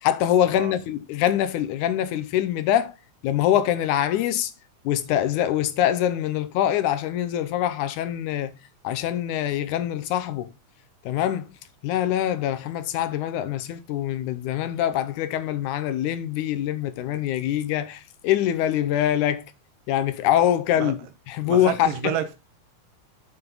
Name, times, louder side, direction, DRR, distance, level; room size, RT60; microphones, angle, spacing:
voice 1, 0.0-2.9 3.2-4.5 4.8-8.5 8.8-10.5 11.0-11.5 11.8-19.5 19.9-21.0 21.3-22.1, left 11 dB, 75° left, 2.0 m, -24 dB
voice 2, 21.4-22.4, right 10 dB, 85° right, 2.8 m, -29 dB
7.7 x 5.7 x 3.9 m
omnidirectional pair, 3.7 m